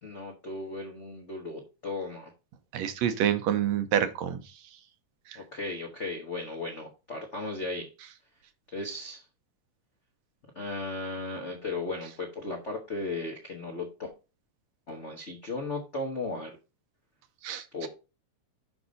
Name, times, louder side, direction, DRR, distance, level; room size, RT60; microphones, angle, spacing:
voice 1, 0.0-2.3 5.3-7.9 8.7-9.2 10.5-14.1 14.9-16.5 17.7-17.9, left 2 dB, 60° left, 0.7 m, -36 dB
voice 2, 2.7-4.4 17.4-17.9, right 10 dB, 75° right, 1.9 m, -27 dB
7.0 x 5.4 x 4.0 m
omnidirectional pair, 3.4 m